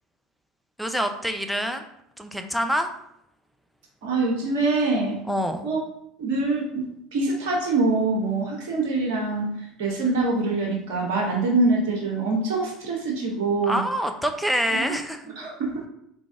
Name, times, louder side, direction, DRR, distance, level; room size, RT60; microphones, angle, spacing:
voice 1, 0.8-1.9 2.2-2.9 5.3-5.7 13.6-15.2, equal, ahead, 6 dB, 0.6 m, -26 dB
voice 2, 4.0-5.2 5.6-5.8 6.2-9.5 9.8-13.8 14.8-14.9 15.4-15.9, right 3 dB, 65° right, -1 dB, 1.0 m, -24 dB
3.8 x 3.5 x 3.6 m, 0.75 s
figure-of-eight pair, 70°, 0 cm